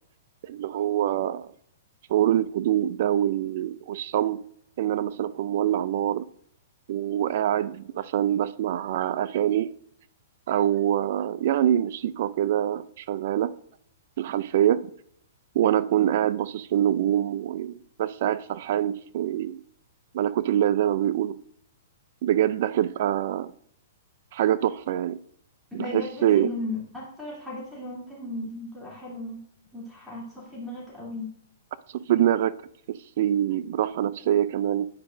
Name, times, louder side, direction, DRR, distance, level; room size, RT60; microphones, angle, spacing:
voice 1, 0.4-1.5 2.1-4.4 4.8-6.2 6.9-9.7 10.5-13.6 14.2-14.9 15.5-19.6 20.1-21.4 22.2-23.5 24.3-25.2 25.7-26.5 32.1-32.5 32.9-34.9, right 11 dB, 55° right, 0.4 m, -25 dB
voice 2, 25.8-29.4 29.7-31.3, left 2 dB, ahead, 3.0 m, -36 dB
9.5 x 4.8 x 2.6 m
hypercardioid pair, 135°, 0 cm